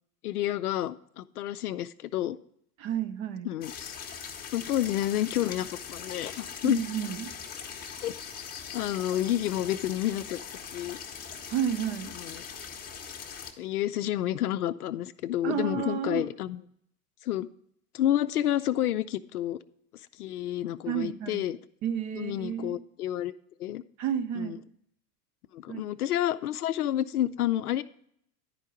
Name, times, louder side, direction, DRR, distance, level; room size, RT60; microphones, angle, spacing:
voice 1, 0.2-2.4 3.5-3.9 4.5-6.8 8.0-8.1 8.7-10.4 10.7-11.0 12.2-12.4 13.6-16.6 17.2-17.5 17.9-19.6 20.2-21.6 22.2-23.3 23.6-23.8 24.3-24.6 25.5-27.8, left 12 dB, 70° left, 12 dB, 0.6 m, -29 dB
voice 2, 2.8-3.5 6.6-7.3 11.5-12.2 15.4-16.3 20.9-21.5 21.8-22.8 24.0-24.6 25.7-25.8, right 9 dB, 35° right, 9 dB, 0.8 m, -31 dB
sound 1, 3.6-13.5, left 7 dB, 20° left, 0.9 m, -41 dB
11.0 x 4.5 x 5.1 m, 0.68 s
figure-of-eight pair, 90°, 47 cm